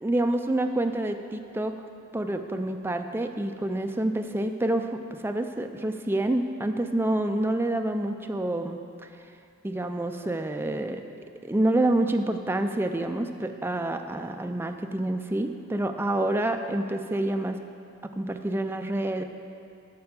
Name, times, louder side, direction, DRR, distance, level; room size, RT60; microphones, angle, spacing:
voice 1, 0.0-1.8 2.1-8.8 9.6-11.0 11.4-17.6 18.2-19.2, right 1 dB, 10° right, 6 dB, 0.3 m, -27 dB
6.7 x 6.7 x 6.8 m, 2.5 s
head